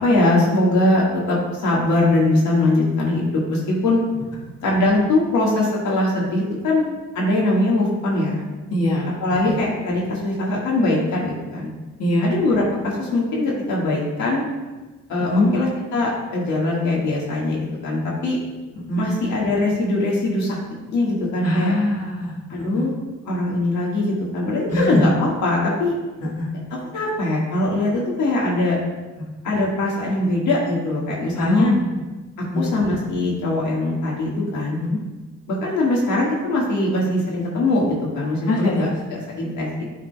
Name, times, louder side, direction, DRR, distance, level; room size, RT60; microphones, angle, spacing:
voice 1, 0.0-4.0 4.6-6.8 7.1-8.4 9.2-11.7 12.2-14.4 15.1-18.4 19.0-20.6 20.9-21.7 22.5-22.9 23.2-25.9 26.7-28.8 29.4-31.8 32.5-34.8 35.5-39.8, left 2 dB, 75° left, -4 dB, 1.6 m, -21 dB
voice 2, 8.7-9.6 12.0-12.3 15.3-15.5 18.9-19.1 21.4-22.8 24.7-25.0 26.4-26.5 31.4-31.9 32.5-32.7 34.8-35.0 38.5-38.9, left 1 dB, 55° left, -4 dB, 1.4 m, -22 dB
11.0 x 3.8 x 2.2 m, 1.2 s
cardioid pair, 90°, 30 cm